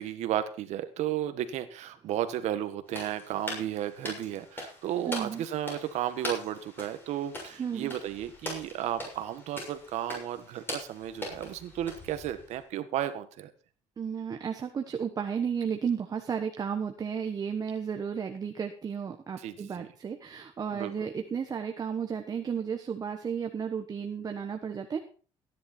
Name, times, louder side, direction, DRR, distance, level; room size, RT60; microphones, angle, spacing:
voice 1, 0.0-13.5 19.4-19.9 20.7-20.9, right 11 dB, 80° right, 10 dB, 1.5 m, -34 dB
sound 1, 2.9-12.6, left 1 dB, 20° left, 6.7 m, -42 dB
voice 2, 5.1-5.4 7.6-7.9 14.0-25.0, right 7 dB, 35° right, 5 dB, 1.2 m, -33 dB
16.0 x 10.5 x 4.4 m, 0.40 s
cardioid pair, 135°, 12 cm